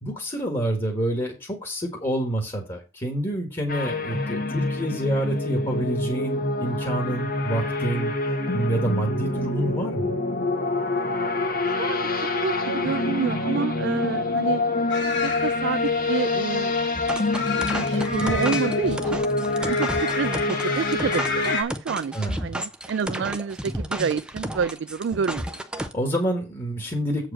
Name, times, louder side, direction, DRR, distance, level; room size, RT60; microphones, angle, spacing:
voice 1, 0.0-8.1 8.5-10.2 22.1-22.4 25.8-27.3, right 1 dB, 25° left, 1.7 m, -28 dB
sound 1, 3.7-21.6, left 2 dB, 45° left, 1.1 m, -26 dB
voice 2, 11.7-14.6 15.2-16.7 17.4-19.2 19.7-25.6, right 6 dB, 65° right, 0.3 m, -29 dB
sound 2, 14.9-21.6, left 4 dB, 65° left, 2.3 m, -31 dB
sound 3, 16.9-25.9, equal, 5° right, 0.6 m, -32 dB
7.9 x 4.8 x 6.2 m
head